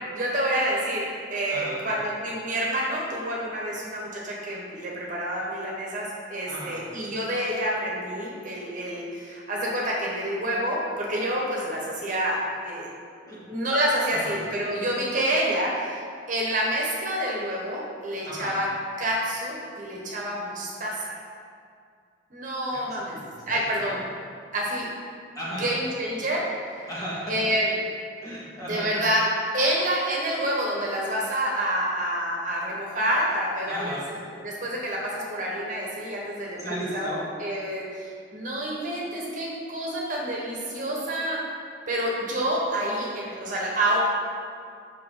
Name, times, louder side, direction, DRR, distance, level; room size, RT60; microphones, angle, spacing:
voice 1, 0.1-12.9 13.3-18.7 19.0-21.2 22.3-23.2 23.5-24.0 24.5-24.9 25.5-26.4 27.3-27.7 28.6-29.2 29.5-36.6 36.9-41.4 41.9-44.0, right 1 dB, 45° right, -3 dB, 1.4 m, -28 dB
voice 2, 1.5-1.8 6.5-6.8 13.3-13.4 14.1-14.3 18.3-18.6 22.7-24.0 25.3-25.7 26.9-27.4 28.2-28.9 33.7-34.0 36.6-37.1, equal, 20° left, -7 dB, 1.9 m, -36 dB
8.8 x 6.4 x 3.9 m, 2.3 s
head